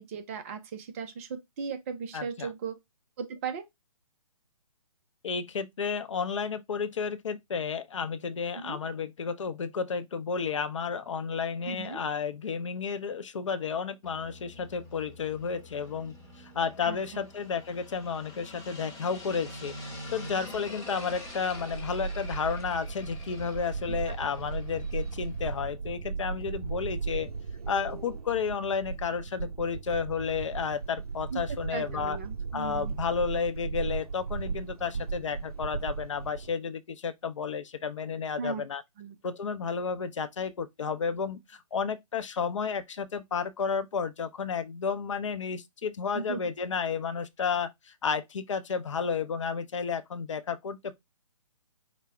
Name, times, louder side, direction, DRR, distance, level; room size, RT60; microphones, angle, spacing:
voice 1, 0.0-2.8 3.2-3.7 8.5-8.8 11.7-12.0 16.8-17.2 23.9-24.1 31.3-31.4 31.7-32.9 38.4-38.6 39.0-39.2 46.1-46.4, right 6 dB, 25° right, 0.5 m, -37 dB
voice 2, 2.1-2.5 5.2-19.8 20.1-27.3 27.7-32.2 32.5-38.8 39.2-50.9, left 6 dB, 55° left, 0.6 m, -32 dB
sound 1, 14.0-25.6, left 1 dB, 15° left, 1.2 m, -46 dB
sound 2, 20.5-36.5, right 5 dB, 85° right, 0.5 m, -36 dB
4.8 x 2.1 x 3.3 m
figure-of-eight pair, 135°, 19 cm